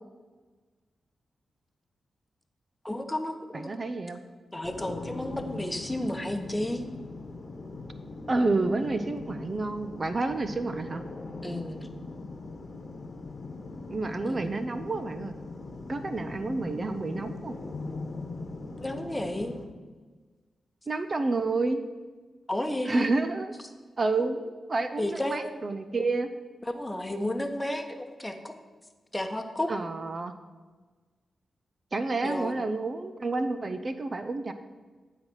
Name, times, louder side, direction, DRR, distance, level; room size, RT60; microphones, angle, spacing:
voice 1, 2.8-3.8 4.5-6.9 11.4-11.9 14.2-14.5 18.8-19.6 22.5-23.1 25.0-25.5 26.7-28.5 29.1-29.7 32.2-32.7, left 1 dB, 15° left, 7 dB, 1.0 m, -32 dB
voice 2, 3.5-4.2 8.3-11.0 13.9-15.3 15.9-17.6 20.9-21.8 22.9-23.5 24.0-26.3 29.7-30.3 31.9-34.5, right 3 dB, 45° right, 9 dB, 0.5 m, -29 dB
sound 1, 4.6-19.6, left 3 dB, 55° left, 1.1 m, -41 dB
9.4 x 4.1 x 6.1 m, 1.4 s
supercardioid pair, 45°, 0 cm